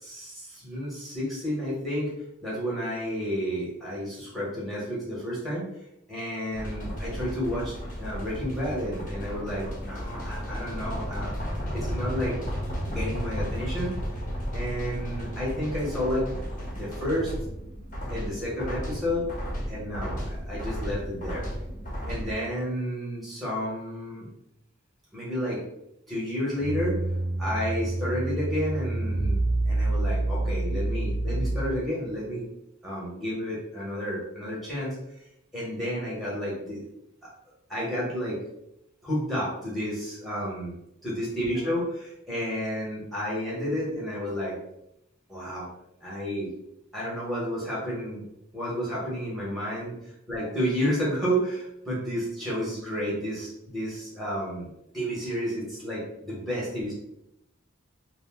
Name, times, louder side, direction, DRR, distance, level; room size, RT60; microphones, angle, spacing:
voice 1, 0.0-2.1 2.4-5.7 6.1-11.3 11.7-12.4 12.9-14.0 14.5-17.3 18.1-19.3 19.7-21.5 22.1-24.3 25.1-25.6 26.1-27.0 27.4-29.4 29.7-32.5 32.8-34.9 35.5-36.8 37.2-37.3 37.7-38.4 39.0-40.7 41.0-44.6 45.3-45.7 46.0-46.5 46.9-48.2 48.5-49.9 50.3-54.7 54.9-56.9, equal, ahead, -6 dB, 0.8 m, -31 dB
sound 1, 6.5-22.3, equal, 35° left, 0.7 m, -34 dB
sound 2, 26.6-32.0, right 2 dB, 85° right, 0.6 m, -27 dB
2.5 x 2.1 x 3.4 m, 0.81 s
head